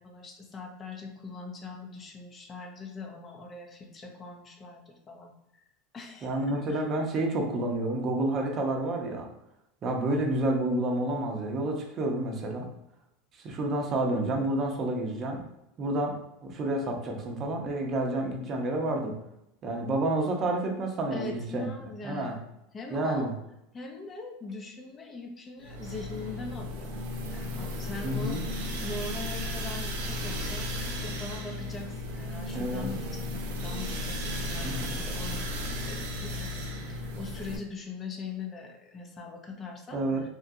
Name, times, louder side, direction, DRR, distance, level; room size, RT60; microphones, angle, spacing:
voice 1, 0.0-5.6 5.9-6.8 21.1-22.4 22.7-23.3 23.7-26.9 27.3-40.0, left 3 dB, 25° left, 1 dB, 0.6 m, -42 dB
voice 2, 6.2-9.3 9.8-12.7 13.4-15.4 15.8-19.2 19.6-21.7 22.0-22.3 22.9-23.3 28.0-28.4 32.5-32.9 34.6-35.0 39.9-40.2, right 1 dB, 35° right, 2 dB, 0.7 m, -29 dB
sound 1, 25.6-37.6, left 1 dB, 75° right, 0.5 m, -35 dB
2.9 x 2.3 x 2.7 m, 0.85 s
supercardioid pair, 110°, 0 cm